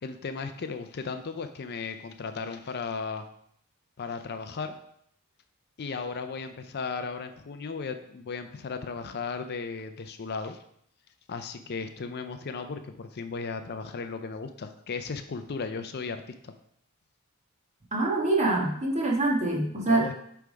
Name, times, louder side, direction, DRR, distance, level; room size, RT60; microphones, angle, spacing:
voice 1, 0.0-3.2 4.0-4.8 5.8-10.6 11.3-16.5 19.9-20.1, left 4 dB, 45° left, 8 dB, 0.5 m, -35 dB
voice 2, 17.9-20.1, right 2 dB, 30° right, -1 dB, 1.4 m, -25 dB
8.0 x 3.5 x 5.0 m, 0.71 s
head